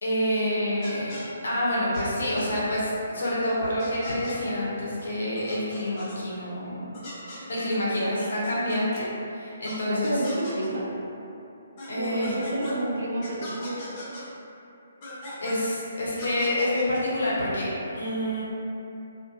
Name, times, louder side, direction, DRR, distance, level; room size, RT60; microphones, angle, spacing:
voice 1, 0.0-1.1 1.4-10.2 11.9-12.4 15.4-18.4, left 1 dB, 70° left, -6 dB, 0.7 m, -28 dB
sound 1, 0.8-1.2 1.9-2.0 2.4-2.5 3.2-3.3 3.8-4.4 5.0-5.1 5.4-6.2 6.9-9.0 9.6-9.7 10.0-10.7 11.8-12.7 13.2-14.2 15.0-15.7 16.2-17.0, left 1 dB, 35° left, 0.7 m, -40 dB
voice 2, 7.6-8.5 9.8-10.9 12.0-13.8, right 1 dB, 70° right, -3 dB, 0.5 m, -30 dB
2.6 x 2.1 x 2.4 m, 2.8 s
figure-of-eight pair, 135°, 0 cm